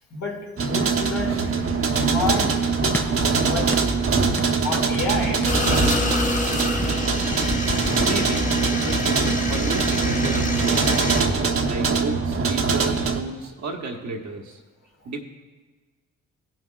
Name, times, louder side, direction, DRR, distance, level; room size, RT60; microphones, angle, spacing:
voice 1, 0.1-3.0 3.3-3.8 4.6-5.5, left 2 dB, 55° left, -1 dB, 2.2 m, -29 dB
sound 1, 0.6-13.2, right 4 dB, 50° right, 1.0 m, -23 dB
sound 2, 2.9-3.3 3.7-4.0 4.4-4.6 4.9-5.1 5.4-8.8, left 2 dB, 5° left, 0.4 m, -33 dB
sound 3, 5.5-11.2, left 2 dB, 25° left, 1.3 m, -27 dB
voice 2, 8.0-8.5 8.8-11.0 11.7-14.6 15.0-15.2, right 3 dB, 70° right, 2 dB, 1.3 m, -32 dB
17.5 x 6.1 x 2.4 m, 1.3 s
cardioid pair, 65°, 30 cm